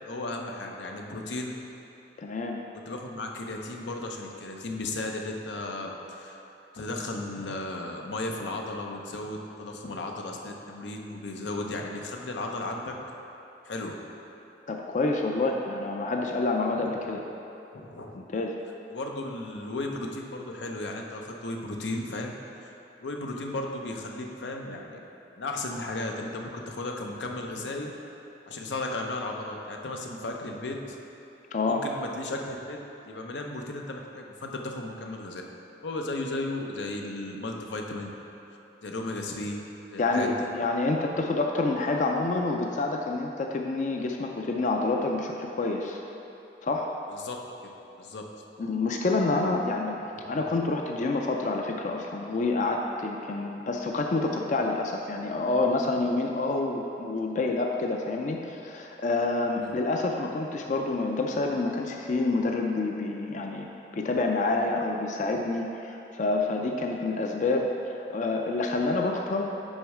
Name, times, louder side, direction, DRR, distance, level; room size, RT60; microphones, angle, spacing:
voice 1, 0.1-1.5 2.9-6.4 6.7-12.9 13.6-13.9 16.8-16.9 17.7-18.2 18.9-22.3 22.6-22.7 23.0-25.0 25.4-27.9 28.5-31.0 31.7-32.8 33.1-35.4 35.8-38.1 38.8-39.6 39.9-40.3 47.1-47.4 48.0-48.2 50.3-50.4 59.6-59.7, left 2 dB, 90° left, 1 dB, 0.7 m, -35 dB
voice 2, 2.2-2.6 14.7-17.2 18.1-18.5 31.5-31.9 40.0-46.0 46.6-46.9 48.6-63.7 63.9-69.5, left 3 dB, 45° left, 2 dB, 0.4 m, -28 dB
6.3 x 5.3 x 4.8 m, 3.0 s
head